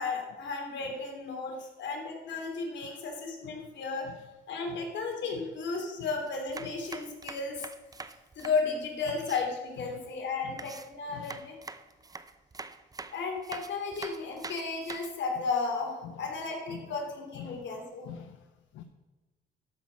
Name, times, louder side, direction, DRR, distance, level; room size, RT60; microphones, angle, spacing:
voice 1, 0.0-4.1 4.5-7.7 8.4-11.6 13.1-18.1, left 4 dB, 65° left, 1 dB, 3.0 m, -34 dB
sound 1, 6.3-9.4 10.6-15.1, right 3 dB, 20° right, 0.6 m, -44 dB
voice 2, 11.1-11.4 16.0-16.3 16.7-17.0 17.3-17.7 18.0-18.8, left 9 dB, 85° left, 8 dB, 0.7 m, -47 dB
13.0 x 5.9 x 6.0 m, 1.2 s
cardioid pair, 90°, 20 cm